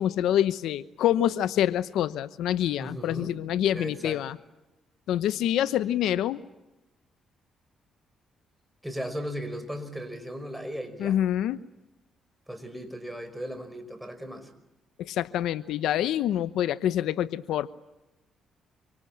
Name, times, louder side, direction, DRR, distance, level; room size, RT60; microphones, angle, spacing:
voice 1, 0.0-4.4 5.1-6.4 11.0-11.6 15.0-17.7, left 11 dB, 85° left, 14 dB, 0.9 m, -26 dB
voice 2, 2.8-4.2 8.8-11.2 12.5-14.5, equal, 5° right, 9 dB, 5.3 m, -37 dB
27.0 x 25.0 x 8.7 m, 0.96 s
cardioid pair, 90°, 0 cm